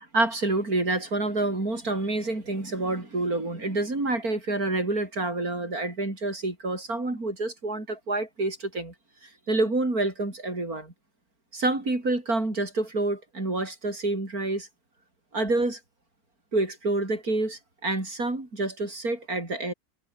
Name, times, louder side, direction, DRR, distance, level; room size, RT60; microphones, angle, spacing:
voice 1, 0.1-8.9 9.2-10.9 11.5-14.7 15.3-15.8 16.5-19.7, right 2 dB, 75° right, 6.5 m, -28 dB
omnidirectional pair, 1.6 m